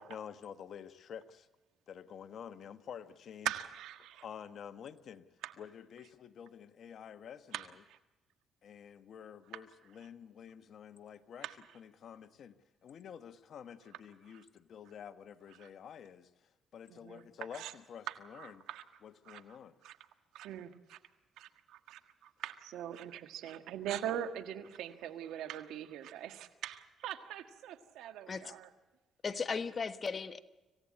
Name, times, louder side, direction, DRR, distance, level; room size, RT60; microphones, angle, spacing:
voice 1, 0.0-1.5 1.9-3.5 4.2-5.2 5.6-7.7 8.6-11.5 11.7-16.3 16.7-18.6 19.0-19.7, left 8 dB, 60° left, 10 dB, 1.2 m, -49 dB
voice 2, 3.4-4.2 5.4-5.5 7.5-8.0 11.4-11.5 14.3-14.4 15.6-15.7 16.9-17.2 17.5-17.7 18.1-18.8 19.2-19.4 19.8-20.0 20.3-21.0 21.4-28.7, right 11 dB, 90° right, 9 dB, 1.6 m, -42 dB
voice 3, 29.2-30.4, left 5 dB, 40° left, 11 dB, 1.3 m, -36 dB
26.0 x 16.5 x 8.5 m, 1.1 s
cardioid pair, 90°, 0 cm